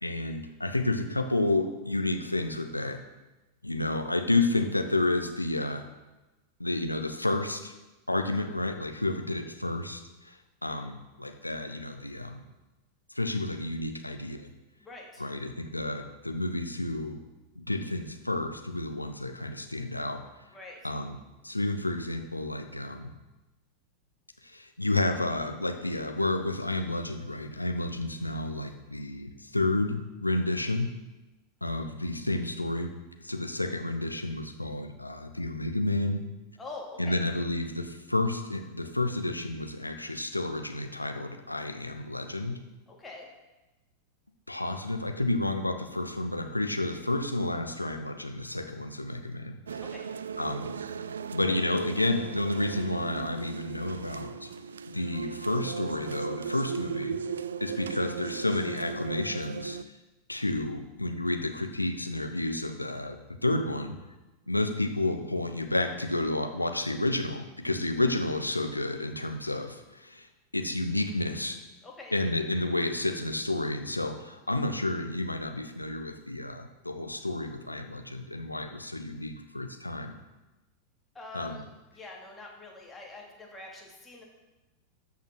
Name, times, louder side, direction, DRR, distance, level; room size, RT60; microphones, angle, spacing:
voice 1, 0.0-3.0 3.6-5.8 6.6-7.7 8.1-12.4 13.1-14.5 15.2-17.2 17.6-20.2 20.8-21.2 21.4-23.1 24.4-30.9 31.6-32.9 33.2-36.2 37.0-42.6 44.5-49.8 50.4-50.7 51.3-54.5 54.8-57.2 57.6-59.8 60.3-64.0 64.5-70.3 70.5-71.6 72.1-80.2 81.3-81.6, left 2 dB, 85° left, 6 dB, 1.0 m, -30 dB
voice 2, 14.8-15.2 20.5-20.8 36.6-37.2 42.9-43.3 49.8-50.0 71.8-72.1 81.1-81.6 81.9-84.2, left 3 dB, 10° left, -2 dB, 2.8 m, -44 dB
sound 1, 49.7-59.8, right 6 dB, 70° right, 0.4 m, -37 dB
13.0 x 5.8 x 6.1 m, 1.1 s
figure-of-eight pair, 90°, 0 cm